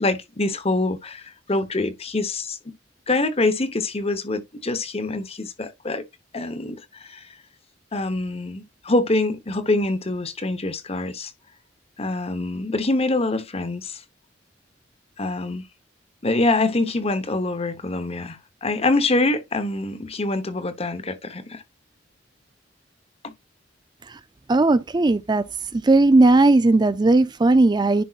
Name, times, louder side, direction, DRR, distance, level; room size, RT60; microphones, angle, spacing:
voice 1, 0.0-2.6 3.1-6.0 6.3-7.3 7.9-11.3 12.0-14.0 15.2-15.6 16.2-21.6 23.2-23.3, left 2 dB, 35° left, 1.1 m, -25 dB
voice 2, 24.5-25.4 25.7-28.0, right 2 dB, 25° right, 0.4 m, -17 dB
10.5 x 5.4 x 2.4 m
head